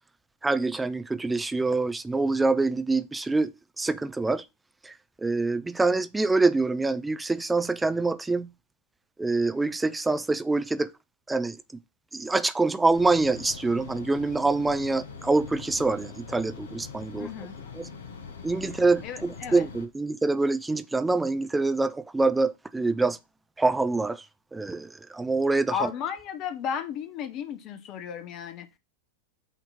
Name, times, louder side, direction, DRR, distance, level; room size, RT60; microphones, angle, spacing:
voice 1, 0.4-4.4 4.8-4.9 5.2-8.5 9.2-10.9 11.3-11.6 12.1-17.3 17.8-17.9 18.4-23.2 23.6-24.2 24.5-25.9, right 3 dB, 10° right, 0.4 m, -25 dB
sound 1, 12.9-19.9, left 5 dB, 65° left, 1.0 m, -43 dB
voice 2, 17.2-17.6 19.0-19.7 25.7-28.7, left 8 dB, 40° left, 0.9 m, -34 dB
8.2 x 3.0 x 4.0 m
figure-of-eight pair, 90°, 0 cm